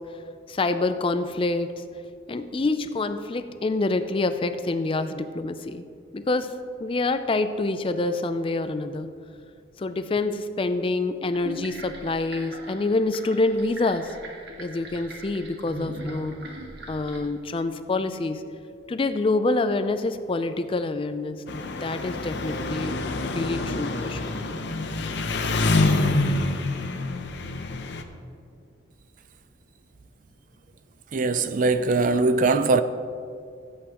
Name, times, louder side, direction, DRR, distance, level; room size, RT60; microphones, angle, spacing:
voice 1, 0.5-1.8 2.3-5.8 6.1-6.5 6.8-9.1 9.8-14.2 14.6-16.4 16.9-18.4 18.9-23.0 23.3-24.4, left 2 dB, 25° left, 0.4 m, -26 dB
sound 1, 11.3-17.2, right 2 dB, 60° right, 1.5 m, -40 dB
Engine, 21.5-28.0, left 2 dB, 60° left, 0.7 m, -26 dB
voice 2, 31.1-32.8, right 3 dB, 40° right, 0.4 m, -21 dB
16.0 x 8.3 x 3.0 m
head